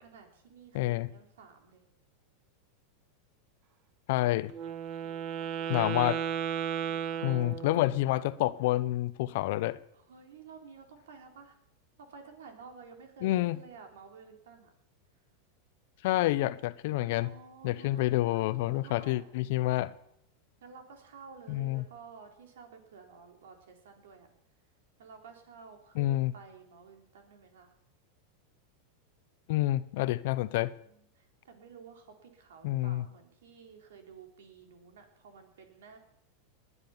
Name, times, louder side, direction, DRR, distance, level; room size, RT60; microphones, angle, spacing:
voice 1, 0.0-1.8 5.0-5.8 6.8-7.6 9.9-11.6 12.0-14.7 17.2-19.3 20.6-24.3 25.0-27.7 30.8-36.0, right 5 dB, 85° right, 3.7 m, -52 dB
voice 2, 0.7-1.1 4.1-4.5 5.7-6.3 7.2-9.8 13.2-13.6 16.0-17.3 17.6-19.9 21.5-21.8 26.0-26.3 29.5-30.8 32.6-33.0, left 16 dB, 65° left, 0.9 m, -28 dB
Wind instrument woodwind instrument, 4.5-8.1, right 9 dB, 45° right, 1.3 m, -34 dB
20.0 x 9.9 x 7.2 m
supercardioid pair, 120°, 0 cm